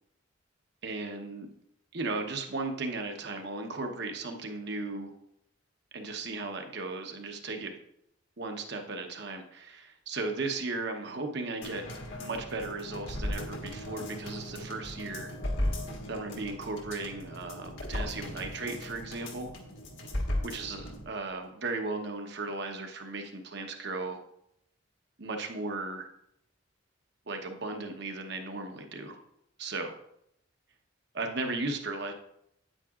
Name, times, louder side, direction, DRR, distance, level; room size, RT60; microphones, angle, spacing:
voice 1, 0.8-1.5 1.9-5.1 5.9-7.8 8.4-15.3 16.1-19.5 20.4-24.2 25.2-26.1 27.3-29.2 29.6-29.9 31.1-32.1, right 3 dB, 55° right, 4 dB, 1.0 m, -36 dB
sound 1, 11.6-21.0 21.4-21.5, left 1 dB, 70° left, 1.5 m, -37 dB
9.0 x 8.8 x 2.5 m, 0.75 s
head